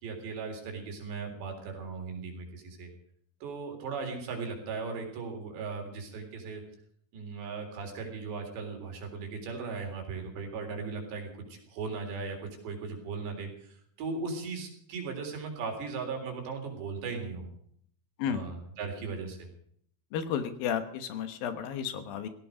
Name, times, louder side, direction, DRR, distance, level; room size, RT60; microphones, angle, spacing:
voice 1, 0.0-2.9 3.4-6.6 7.1-17.5 18.3-19.5, right 4 dB, 90° right, 3 dB, 5.9 m, -38 dB
voice 2, 20.1-22.3, left 8 dB, 65° left, 10 dB, 2.8 m, -32 dB
17.0 x 16.5 x 5.1 m, 0.65 s
omnidirectional pair, 4.8 m